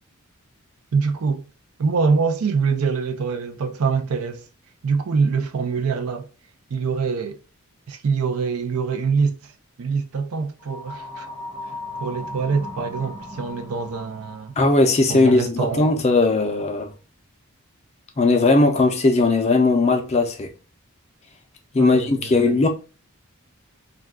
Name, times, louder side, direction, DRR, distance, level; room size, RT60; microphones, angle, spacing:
voice 1, 0.9-1.5 1.8-4.5 4.8-6.3 6.7-7.4 7.9-9.5 9.8-11.3 12.0-14.5 15.1-15.9 21.8-22.5, right 5 dB, 80° right, 0.5 m, -24 dB
sound 1, 10.6-14.6, left 1 dB, 35° right, 0.9 m, -36 dB
voice 2, 14.6-16.9 18.2-20.5 21.7-22.7, left 3 dB, 30° left, 0.4 m, -18 dB
2.3 x 2.2 x 3.4 m
head